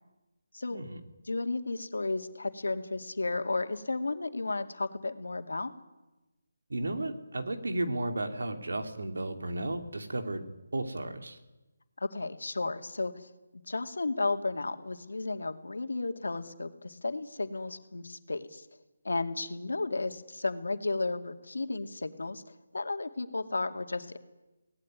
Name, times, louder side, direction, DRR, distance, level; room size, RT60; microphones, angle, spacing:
voice 1, 0.7-1.0 6.7-10.4 10.7-11.4, right 2 dB, 85° right, 6 dB, 3.3 m, -33 dB
voice 2, 1.3-5.7 12.0-13.3 13.7-18.7 19.0-22.4 22.7-24.2, left 3 dB, 90° left, 6 dB, 2.4 m, -33 dB
24.5 x 18.5 x 9.6 m, 1.1 s
hypercardioid pair, 170°, 0 cm